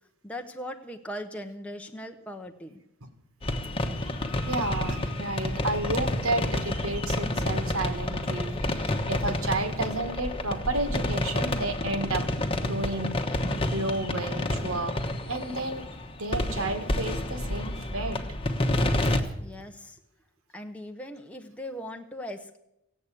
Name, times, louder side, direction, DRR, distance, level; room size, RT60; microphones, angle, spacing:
voice 1, 0.2-2.8 19.4-20.0 20.5-22.6, equal, 5° left, 3 dB, 0.8 m, -39 dB
sound 1, 3.4-19.2, left 1 dB, 25° left, 1.1 m, -29 dB
voice 2, 4.5-12.3 12.6-13.4 13.7-15.0 15.3-15.8 16.2-18.4, right 2 dB, 70° right, 8 dB, 1.8 m, -31 dB
17.0 x 8.3 x 8.3 m, 0.85 s
head